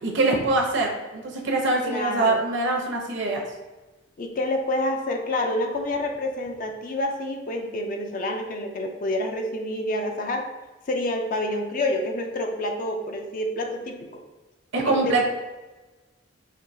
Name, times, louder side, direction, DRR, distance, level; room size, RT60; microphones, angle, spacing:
voice 1, 0.0-3.4 14.7-15.2, right 2 dB, 60° right, 0 dB, 0.7 m, -24 dB
voice 2, 1.8-2.4 4.2-10.4 10.9-14.2 14.9-15.2, left 1 dB, 45° left, 3 dB, 0.4 m, -28 dB
4.3 x 2.7 x 2.6 m, 1.2 s
head